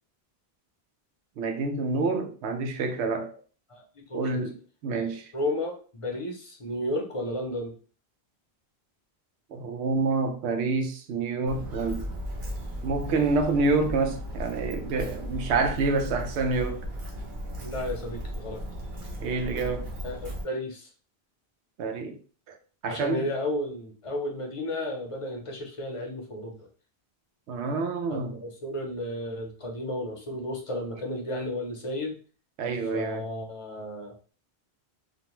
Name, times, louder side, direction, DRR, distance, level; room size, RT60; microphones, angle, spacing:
voice 1, 1.4-3.3 4.1-5.3 9.5-12.1 12.8-16.9 19.2-19.9 21.8-22.2 22.5-22.6 22.8-23.3 27.5-28.4 32.6-33.2, right 3 dB, 85° right, 0.9 m, -28 dB
voice 2, 3.7-4.4 5.3-7.7 17.6-18.6 20.0-20.9 22.8-26.7 28.1-32.2 32.9-34.1, left 1 dB, 40° left, 0.5 m, -33 dB
Walk footsteps, 11.5-20.4, equal, 55° right, 0.8 m, -36 dB
2.5 x 2.1 x 2.9 m
omnidirectional pair, 1.1 m